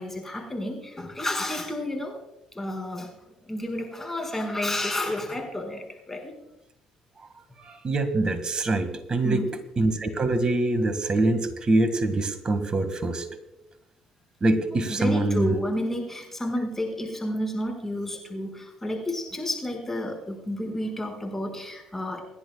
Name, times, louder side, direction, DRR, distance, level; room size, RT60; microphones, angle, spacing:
voice 1, 0.0-2.2 2.6-3.1 3.4-6.3 9.2-9.5 14.9-22.2, left 1 dB, 15° left, 2 dB, 5.2 m, -31 dB
voice 2, 7.6-9.4 9.8-13.3 14.4-15.6, right 2 dB, 35° right, 10 dB, 1.9 m, -24 dB
28.0 x 10.5 x 2.4 m, 0.93 s
hypercardioid pair, 60°, 2 cm